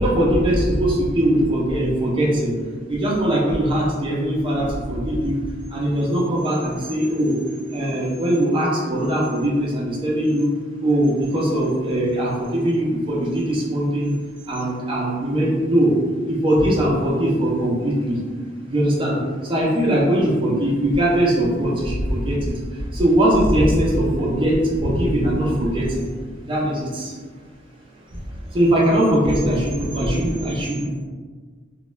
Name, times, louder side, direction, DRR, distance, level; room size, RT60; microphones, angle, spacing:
voice 1, 0.0-2.5 2.9-5.4 5.7-7.4 7.7-10.5 10.8-14.1 14.5-15.9 16.3-18.2 18.7-26.1 26.4-27.2 28.5-30.9, right 1 dB, 25° right, -5 dB, 0.5 m, -20 dB
2.3 x 2.1 x 3.0 m, 1.5 s
head